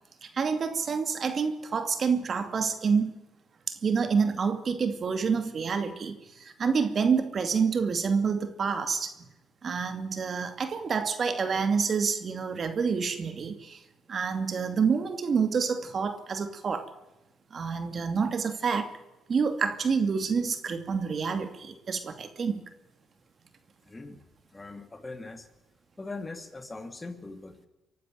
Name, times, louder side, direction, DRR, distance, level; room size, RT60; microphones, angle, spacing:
voice 1, 0.2-3.1 3.7-9.1 9.6-13.8 14.1-16.9 17.5-18.9 19.3-22.6, right 5 dB, 45° right, 9 dB, 2.6 m, -28 dB
voice 2, 23.8-24.2 24.5-25.5 26.0-27.7, left 3 dB, 20° left, 9 dB, 2.7 m, -41 dB
24.5 x 11.5 x 9.3 m, 1.0 s
cardioid pair, 90°, 0 cm